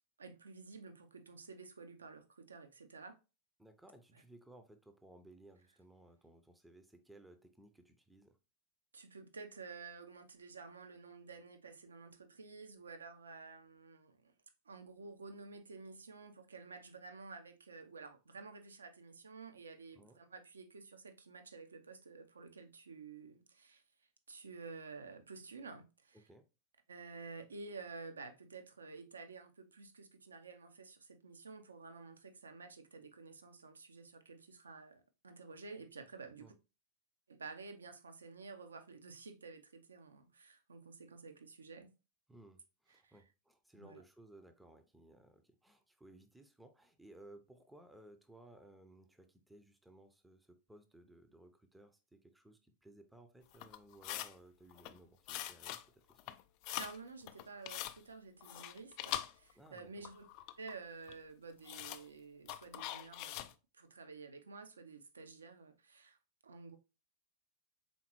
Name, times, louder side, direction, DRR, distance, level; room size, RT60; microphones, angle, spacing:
voice 1, 0.2-3.2 8.9-14.3 14.7-23.8 24.3-26.2 26.9-36.6 37.3-41.9 43.0-43.1 43.8-44.0 56.8-60.3 60.6-66.2 66.4-66.8, right 4 dB, 75° right, 0.6 m, -51 dB
voice 2, 3.6-8.4 19.9-20.2 26.1-26.5 36.4-36.5 42.3-56.3 59.5-60.0, right 1 dB, 5° right, 0.6 m, -60 dB
sound 1, 53.5-54.3 54.7-55.0 55.3-55.8 56.1-57.0 57.3-58.0 58.4-59.8 60.0-60.8 61.1-61.2 61.6-62.0 62.5-63.5, left 13 dB, 45° left, 0.3 m, -43 dB
4.3 x 3.8 x 3.0 m
figure-of-eight pair, 90°, 0 cm